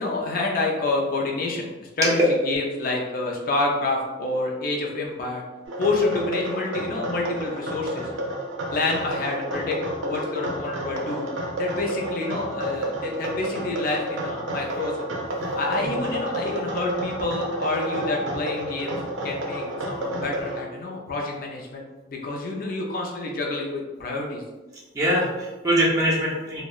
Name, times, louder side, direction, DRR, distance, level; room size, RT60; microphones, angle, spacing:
voice 1, 0.0-5.4 5.8-8.1 8.7-11.3 11.6-15.1 15.6-19.0 19.2-21.8 22.1-24.4, left 2 dB, 50° left, -1 dB, 0.4 m, -28 dB
sound 1, 5.6-20.6, right 1 dB, 85° right, 0.5 m, -30 dB
voice 2, 24.9-26.6, equal, 15° right, -7 dB, 0.4 m, -23 dB
2.7 x 2.0 x 2.3 m, 1.2 s
head